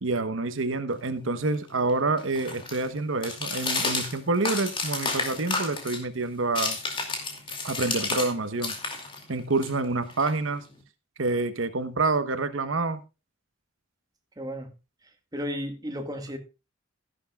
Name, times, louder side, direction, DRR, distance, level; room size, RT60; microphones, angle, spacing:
voice 1, 0.0-6.8 7.6-8.7 9.3-10.6 11.2-13.0, right 3 dB, 90° right, 11 dB, 1.1 m, -27 dB
sound 1, 0.9-8.3 8.6-10.8, left 3 dB, 25° left, 2.6 m, -32 dB
voice 2, 14.4-14.7 15.0-16.4, equal, 20° right, 5 dB, 1.7 m, -34 dB
14.0 x 11.5 x 2.4 m, 0.28 s
head